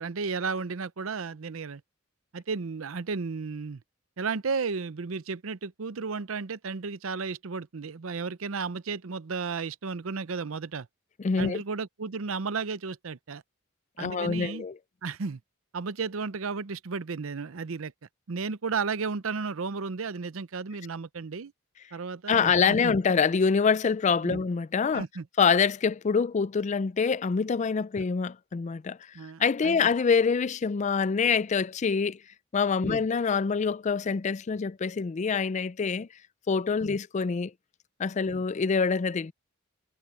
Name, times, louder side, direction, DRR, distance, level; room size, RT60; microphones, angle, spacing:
voice 1, 0.0-1.8 2.3-3.8 4.2-10.9 11.4-13.4 14.0-14.7 15.0-15.4 15.7-17.9 18.3-21.5 21.9-22.9 24.2-24.4 24.9-25.3 29.1-29.9 32.8-33.0 36.8-37.0 38.3-38.4, right 4 dB, 90° right, 0.7 m, -33 dB
voice 2, 11.2-11.6 14.0-14.8 22.3-25.0 25.4-29.0 29.4-32.2 32.5-36.1 36.5-37.5 38.0-39.3, left 5 dB, 35° left, 0.4 m, -25 dB
head